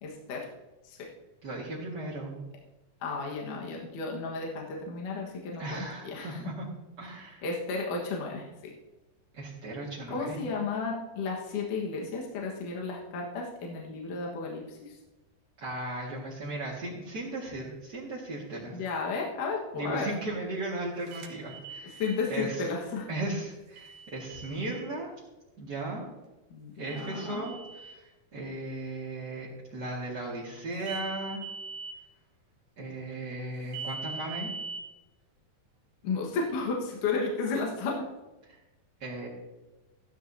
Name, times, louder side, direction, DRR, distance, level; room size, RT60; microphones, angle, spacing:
voice 1, 0.0-0.4 0.8-1.0 3.0-6.4 7.4-8.7 10.1-15.0 18.7-20.1 22.0-23.1 26.5-27.5 36.0-38.1, left 4 dB, 65° left, -1 dB, 2.8 m, -33 dB
voice 2, 1.4-2.4 5.6-6.7 7.0-7.4 9.3-10.4 15.6-18.8 19.7-22.0 22.3-22.6 23.1-25.1 25.6-26.1 26.8-31.4 32.8-34.5 39.0-39.3, right 2 dB, 40° right, -7 dB, 1.7 m, -36 dB
sound 1, 21.1-22.2 23.8-24.9 26.9-28.0 30.8-32.0 33.7-34.8, right 4 dB, 85° right, 3.1 m, -41 dB
14.5 x 12.5 x 2.8 m, 1.1 s
omnidirectional pair, 4.2 m